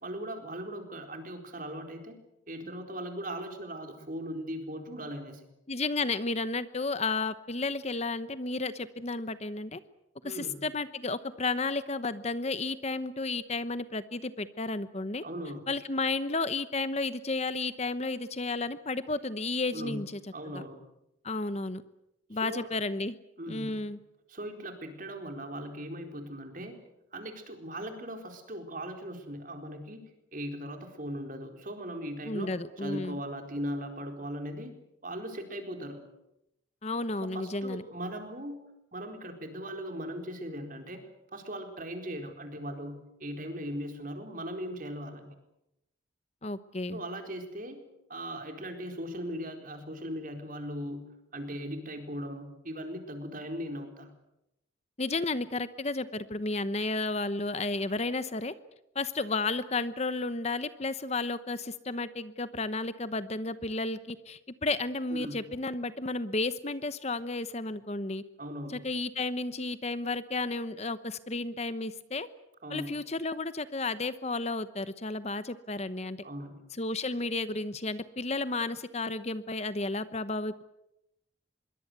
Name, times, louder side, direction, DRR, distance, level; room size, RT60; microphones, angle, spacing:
voice 1, 0.0-2.2 2.5-5.4 10.2-10.6 15.2-15.6 19.7-20.0 20.3-20.8 22.3-22.7 23.4-23.7 24.3-26.8 27.1-30.0 30.3-34.8 35.0-36.0 37.2-38.6 38.9-45.3 46.9-47.8 48.1-51.0 51.3-54.1 65.1-65.3 68.4-68.8 72.6-72.9 76.2-76.6, equal, 45° right, 5 dB, 4.3 m, -39 dB
voice 2, 5.7-9.8 10.2-15.2 15.7-20.2 20.5-20.6 21.2-21.8 22.3-23.2 23.5-24.0 32.3-33.2 36.8-37.8 46.4-47.0 55.0-58.5 58.9-68.2 68.7-72.3 72.7-76.2 76.8-80.5, left 3 dB, 35° left, 13 dB, 0.9 m, -32 dB
25.5 x 22.5 x 8.1 m, 0.85 s
head